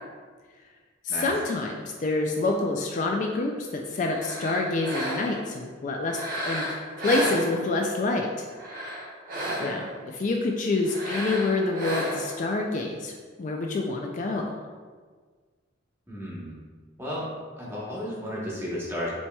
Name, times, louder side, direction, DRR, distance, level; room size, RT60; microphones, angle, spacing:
voice 1, 1.0-8.5 9.6-9.9 10.1-14.6, left 2 dB, 40° left, 1 dB, 0.3 m, -27 dB
sound 1, 4.0-5.5 6.1-7.9 8.5-10.0 10.8-12.4, equal, 50° right, 0.9 m, -32 dB
voice 2, 16.1-16.6 17.0-17.3 17.6-19.1, left 1 dB, 15° right, -6 dB, 1.0 m, -33 dB
7.0 x 2.9 x 2.2 m, 1.5 s
head